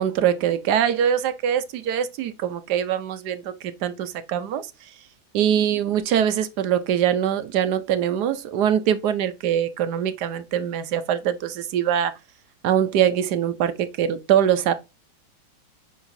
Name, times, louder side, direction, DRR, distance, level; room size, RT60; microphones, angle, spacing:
voice 1, 0.0-4.7 5.3-12.1 12.6-14.7, right 9 dB, 65° right, 1.1 m, -23 dB
9.6 x 4.0 x 2.6 m
omnidirectional pair, 2.2 m